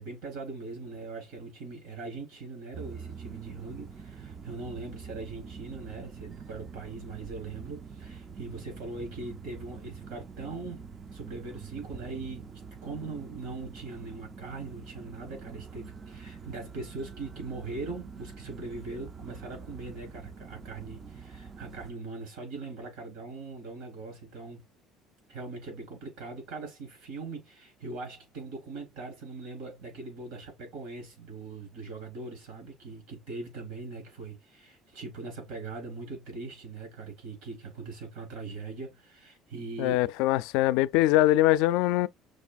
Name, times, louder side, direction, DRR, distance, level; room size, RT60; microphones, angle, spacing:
voice 1, 0.0-10.8 11.1-12.5 12.8-24.6 25.3-40.1, right 3 dB, 80° right, 3.8 m, -41 dB
sound 1, 2.7-21.9, right 5 dB, 30° right, 0.4 m, -45 dB
voice 2, 39.8-42.1, left 15 dB, 80° left, 0.3 m, -23 dB
6.4 x 3.3 x 2.3 m
cardioid pair, 135°, 0 cm